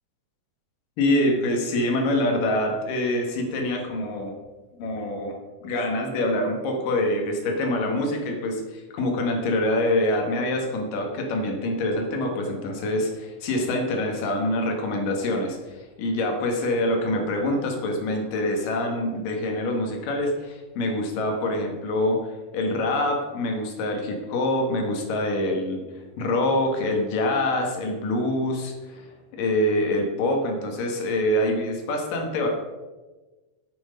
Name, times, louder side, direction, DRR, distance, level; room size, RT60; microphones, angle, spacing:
voice 1, 1.0-4.3 4.8-25.8 26.2-32.5, left 1 dB, 85° left, 2 dB, 3.3 m, -25 dB
10.0 x 7.9 x 5.1 m, 1.2 s
omnidirectional pair, 3.8 m